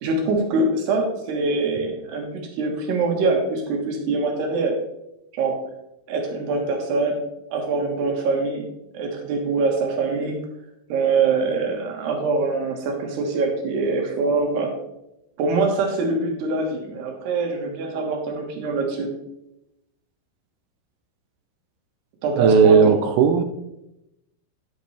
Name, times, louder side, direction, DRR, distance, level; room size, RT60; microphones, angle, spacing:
voice 1, 0.0-4.8 5.3-5.6 6.1-7.2 7.5-8.7 8.9-10.4 10.9-14.7 15.4-19.1 22.2-23.0, right 3 dB, 65° right, 1 dB, 3.4 m, -24 dB
voice 2, 22.4-23.4, right 6 dB, 85° right, 6 dB, 2.3 m, -16 dB
10.5 x 8.2 x 3.4 m, 0.86 s
omnidirectional pair, 5.5 m